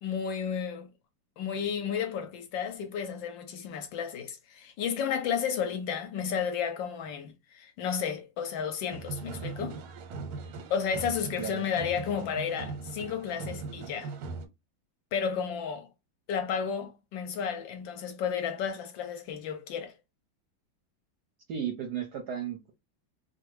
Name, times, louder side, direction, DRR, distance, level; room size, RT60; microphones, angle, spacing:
voice 1, 0.0-0.9 1.4-9.8 10.7-14.1 15.1-15.9 16.3-19.9, left 7 dB, 75° left, 1.2 m, -32 dB
sound 1, 8.9-14.5, right 4 dB, 90° right, 1.6 m, -40 dB
voice 2, 21.5-22.7, right 8 dB, 70° right, 0.9 m, -34 dB
3.3 x 2.2 x 3.1 m
omnidirectional pair, 2.3 m